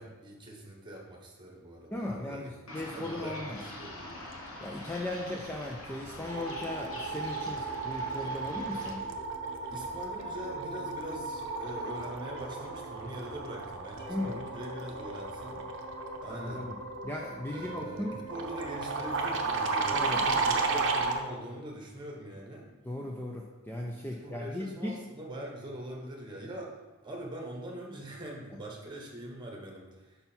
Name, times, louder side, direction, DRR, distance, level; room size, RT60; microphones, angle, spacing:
voice 1, 0.0-4.2 9.7-15.7 16.2-16.7 17.5-22.7 24.1-26.7 27.0-30.2, right 1 dB, 20° right, -1 dB, 1.2 m, -43 dB
voice 2, 1.9-3.6 4.6-9.1 14.1-14.4 16.4-16.8 17.0-18.2 19.9-20.2 22.8-25.0, left 1 dB, 10° left, 0 dB, 0.4 m, -37 dB
sound 1, 2.7-8.9, left 1 dB, 65° left, 1.2 m, -44 dB
sound 2, 5.4-5.7 6.0-21.2, right 3 dB, 55° right, 0.7 m, -34 dB
sound 3, 6.3-13.5 13.9-17.3 17.6-21.3, right 1 dB, 35° left, 2.0 m, -47 dB
5.5 x 5.4 x 4.5 m, 1.2 s
head